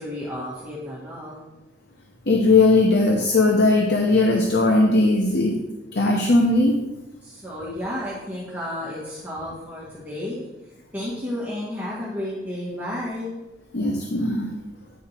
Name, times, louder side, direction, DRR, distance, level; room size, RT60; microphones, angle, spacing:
voice 1, 0.0-1.4 7.2-10.5 10.9-13.3, left 1 dB, 10° right, -9 dB, 1.7 m, -32 dB
voice 2, 2.3-5.5 5.9-6.7 13.7-14.6, left 2 dB, 65° left, 1 dB, 0.8 m, -18 dB
9.4 x 4.9 x 4.4 m, 1.1 s
head